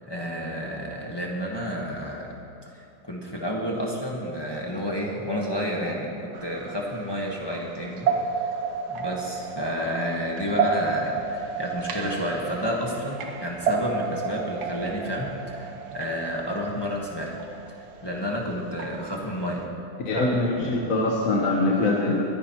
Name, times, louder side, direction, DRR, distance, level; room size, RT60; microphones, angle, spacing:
voice 1, 0.0-2.3 2.7-8.1 8.9-17.4 18.0-19.6 20.1-20.3, equal, 15° left, -2 dB, 1.1 m, -30 dB
sound 1, 6.3-19.6, right 5 dB, 70° right, 1.4 m, -32 dB
voice 2, 20.0-22.2, left 2 dB, 55° left, -2 dB, 1.4 m, -23 dB
22.5 x 10.0 x 2.9 m, 2.6 s
omnidirectional pair, 1.8 m